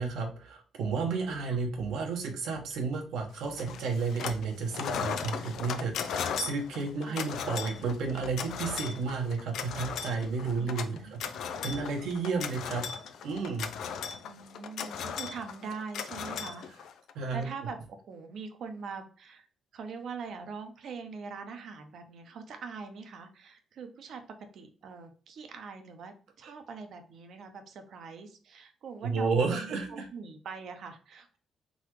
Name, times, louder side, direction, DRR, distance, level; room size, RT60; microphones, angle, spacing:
voice 1, 0.0-11.2 11.6-12.8 13.2-13.7 17.1-17.5 29.0-30.0, right 4 dB, 80° right, 2 dB, 1.2 m, -32 dB
sound 1, 3.6-4.5 4.7-17.1, left 7 dB, 75° left, 0.5 m, -37 dB
voice 2, 7.0-7.3 10.5-10.7 11.0-11.3 14.3-16.9 17.3-17.8 18.1-19.5 19.7-24.2 24.5-31.4, right 5 dB, 65° right, 7 dB, 0.9 m, -43 dB
4.0 x 3.5 x 3.1 m, 0.41 s
cardioid pair, 90°, 0 cm